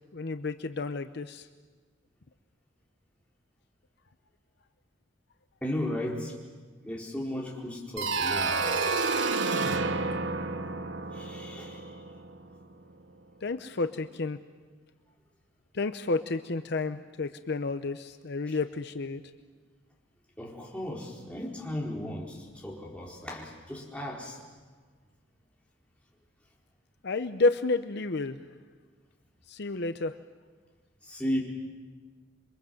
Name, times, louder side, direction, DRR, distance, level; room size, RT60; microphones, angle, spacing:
voice 1, 0.1-1.5 13.4-14.4 15.7-19.2 27.0-28.4 29.5-30.1, left 3 dB, 60° left, 10 dB, 0.8 m, -30 dB
voice 2, 5.6-6.3 6.8-9.3 11.1-12.0 18.5-18.6 20.4-24.4 31.0-31.4, left 1 dB, 5° left, -3 dB, 4.3 m, -36 dB
sound 1, 8.0-12.6, right 3 dB, 70° right, 1.3 m, -30 dB
27.5 x 23.5 x 7.9 m, 1.5 s
head